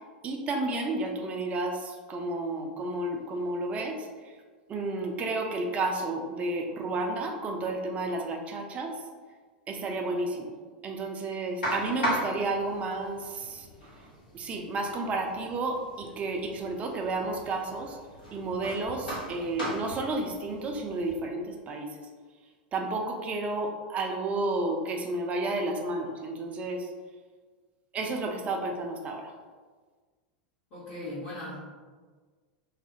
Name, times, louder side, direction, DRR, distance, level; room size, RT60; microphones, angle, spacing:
voice 1, 0.2-4.3 4.7-9.0 9.7-10.5 10.8-13.7 14.3-18.0 18.3-22.0 22.7-26.9 27.9-29.3, right 2 dB, 30° right, 2 dB, 0.4 m, -31 dB
sound 1, 11.6-21.2, equal, 80° left, 1.1 m, -38 dB
voice 2, 30.7-31.6, left 1 dB, 40° left, -9 dB, 1.0 m, -38 dB
2.4 x 2.1 x 2.6 m, 1.5 s
hypercardioid pair, 90°, 5 cm